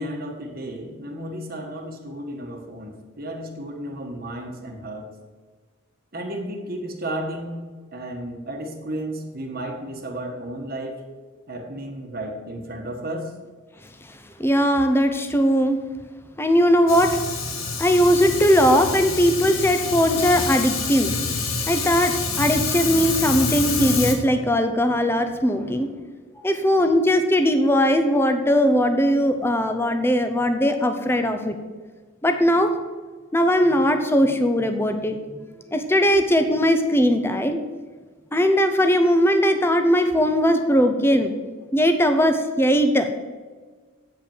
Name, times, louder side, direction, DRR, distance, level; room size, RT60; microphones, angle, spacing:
voice 1, 0.0-5.1 6.1-7.7 7.9-11.0 11.5-13.3, right 1 dB, 45° right, 3 dB, 1.2 m, -33 dB
voice 2, 14.1-15.8 16.4-17.2 17.8-21.1 21.7-25.9 26.4-31.6 32.2-32.7 33.3-35.2 35.7-37.6 38.3-41.3 41.7-43.1, equal, 10° left, 7 dB, 0.7 m, -19 dB
Fire, 16.9-24.1, left 4 dB, 80° left, 1.5 m, -27 dB
8.4 x 5.3 x 7.1 m, 1.4 s
head